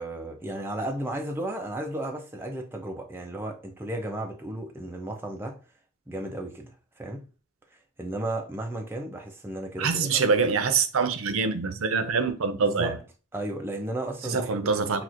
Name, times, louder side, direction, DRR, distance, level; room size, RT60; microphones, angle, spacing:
voice 1, 0.0-5.6 6.1-7.3 7.7-10.2 12.6-13.0 13.3-15.0, right 1 dB, 10° right, 0.4 m, -34 dB
voice 2, 9.8-12.9 14.2-15.0, right 5 dB, 85° right, 0.6 m, -25 dB
5.8 x 2.5 x 2.4 m
head